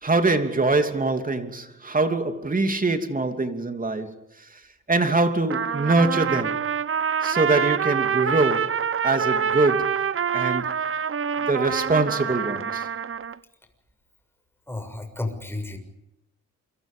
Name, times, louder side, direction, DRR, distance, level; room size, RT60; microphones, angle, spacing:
voice 1, 0.0-4.6 4.9-6.6 7.2-10.1 10.3-10.7 11.4-12.9, right 3 dB, 25° right, 3.0 m, -24 dB
Trumpet, 5.5-13.4, right 7 dB, 40° right, 1.0 m, -26 dB
voice 2, 14.7-15.8, left 2 dB, 5° left, 6.6 m, -32 dB
28.5 x 25.0 x 5.3 m
cardioid pair, 100°, 33 cm